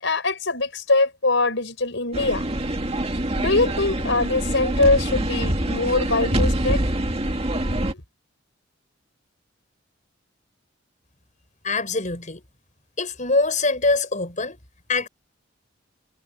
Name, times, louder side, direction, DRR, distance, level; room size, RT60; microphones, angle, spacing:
voice 1, 0.0-2.4 3.3-6.8 7.6-8.0, left 3 dB, 65° left, 6.3 m, -23 dB
sound 1, 2.1-7.9, right 1 dB, 30° right, 2.2 m, -25 dB
voice 2, 11.6-12.4 13.0-14.6 14.9-15.1, left 3 dB, 40° left, 5.4 m, -23 dB
head